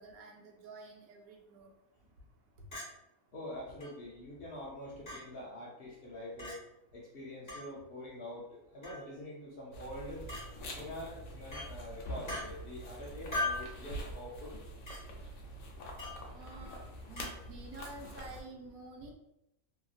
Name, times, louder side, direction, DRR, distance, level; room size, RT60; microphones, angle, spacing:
voice 1, 0.0-1.7 16.3-19.1, right 2 dB, 80° right, 2 dB, 1.0 m, -50 dB
Chink clink, 2.7-2.9 3.8-3.9 5.1-5.2 6.4-6.6 7.5-7.7 8.8-9.1 10.3-10.5 11.5-11.7 12.3-12.4 13.3-13.7 14.9-15.0 16.0-16.2 17.2-17.3, left 2 dB, 35° left, 1.3 m, -38 dB
voice 2, 3.3-6.6 6.9-10.3 10.7-14.6, left 1 dB, 60° left, -4 dB, 0.6 m, -45 dB
sound 1, 9.7-18.4, equal, 75° left, 1.0 m, -45 dB
2.9 x 2.6 x 2.3 m, 0.86 s
omnidirectional pair, 1.5 m